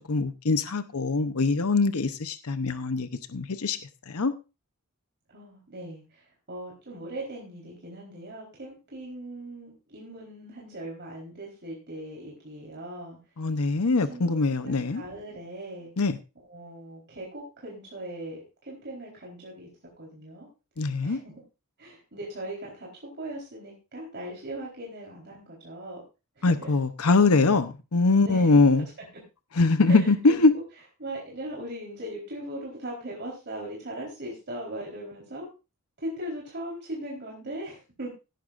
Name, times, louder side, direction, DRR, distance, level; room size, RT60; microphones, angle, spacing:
voice 1, 0.1-3.8 4.1-4.3 13.4-15.0 16.0-16.2 20.8-21.2 26.4-28.9 29.5-30.5, left 3 dB, 70° left, 11 dB, 0.8 m, -23 dB
voice 2, 5.3-6.2 6.5-13.2 14.1-15.9 16.4-19.7 20.0-20.5 21.0-21.4 21.8-26.0 26.4-26.7 28.2-28.5 29.9-30.5 31.0-35.5 36.0-38.1, right 1 dB, 50° right, -3 dB, 4.1 m, -39 dB
17.0 x 11.5 x 2.5 m, 0.29 s
head